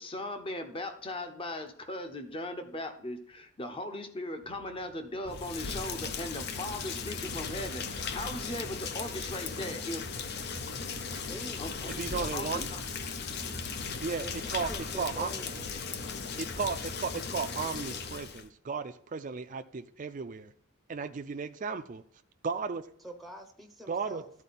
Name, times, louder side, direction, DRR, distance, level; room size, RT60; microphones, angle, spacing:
voice 1, 0.0-10.1 11.6-11.9 12.3-12.8, left 1 dB, 25° left, 0.9 m, -38 dB
sound 1, 4.4-18.1, right 2 dB, 85° right, 0.7 m, -50 dB
Rain, 5.3-18.5, left 5 dB, 50° left, 0.6 m, -37 dB
voice 2, 11.3-12.8 14.2-15.8 23.0-24.3, right 1 dB, ahead, 0.8 m, -46 dB
voice 3, 12.0-12.7 14.0-14.2 14.5-14.7 15.0-15.3 16.4-20.5 20.9-22.0 22.4-22.9 23.9-24.2, right 5 dB, 40° right, 0.4 m, -34 dB
12.5 x 4.4 x 4.1 m
head